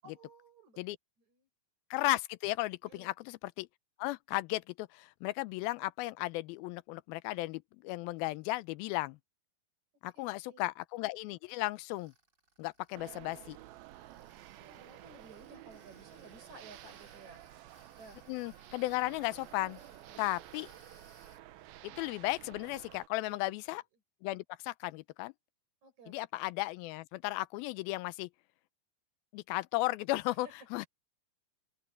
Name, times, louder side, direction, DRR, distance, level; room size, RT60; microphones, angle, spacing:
voice 1, 0.0-0.8 1.3-1.5 2.8-3.1 10.1-10.6 14.6-17.4 17.9-18.2 19.7-20.4 23.3-23.6 25.8-26.2 30.4-30.5, right 3 dB, 50° right, 8.1 m, -56 dB
voice 2, 1.9-3.7 4.0-9.2 10.0-12.1 12.6-13.6 18.3-19.8 20.2-20.7 21.8-23.8 24.2-25.3 26.1-28.3 29.3-30.9, left 19 dB, 85° left, 2.5 m, -35 dB
Tools, 11.9-21.4, right 2 dB, 25° right, 5.8 m, -63 dB
sound 1, 12.9-23.1, right 14 dB, 90° right, 2.7 m, -52 dB
open air
omnidirectional pair, 4.2 m